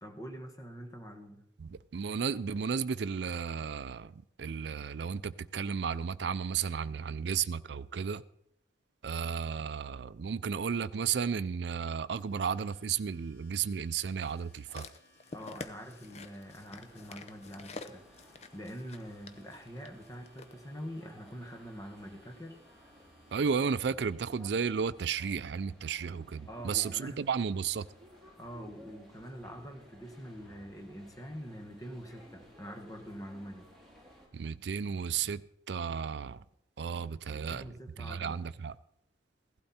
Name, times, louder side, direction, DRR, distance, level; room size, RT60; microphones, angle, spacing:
voice 1, 0.0-1.5 15.3-22.6 26.5-27.3 28.4-33.7 37.0-38.4, equal, 20° left, 1.4 m, -45 dB
voice 2, 1.6-4.1 4.4-8.2 9.0-14.9 23.3-27.9 34.3-35.4 35.7-36.4 36.8-38.8, right 6 dB, 65° right, 0.4 m, -33 dB
Domestic sounds home sounds, 12.2-23.8, equal, 75° left, 4.0 m, -66 dB
sound 1, 14.2-20.5 21.3-21.4, left 3 dB, 35° left, 0.7 m, -49 dB
sound 2, 15.8-34.3, equal, ahead, 3.8 m, -57 dB
16.0 x 12.0 x 4.3 m
head